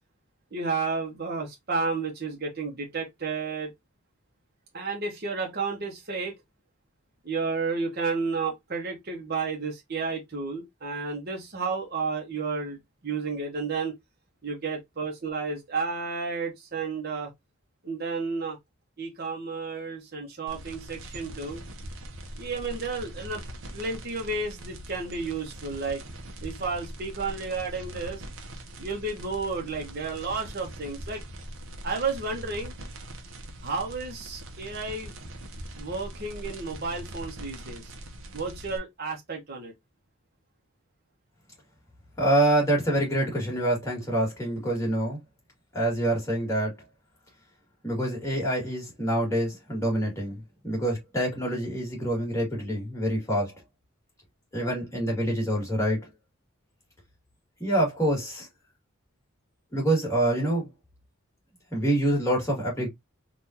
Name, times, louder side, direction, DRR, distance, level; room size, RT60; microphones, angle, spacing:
voice 1, 0.5-3.7 4.7-6.3 7.2-12.8 13.0-13.9 14.4-17.3 17.8-18.6 19.0-21.6 22.4-26.0 26.4-28.2 28.8-31.2 31.8-32.7 33.6-35.2 35.8-37.8 38.3-39.7, right 4 dB, 50° right, 0.9 m, -32 dB
sound 1, 20.5-38.8, right 1 dB, 75° right, 0.8 m, -42 dB
voice 2, 42.2-45.2 45.7-46.7 47.8-53.5 54.5-56.1 57.6-58.5 59.7-60.7 61.7-62.9, right 1 dB, 15° left, 1.8 m, -26 dB
3.7 x 2.5 x 2.8 m
head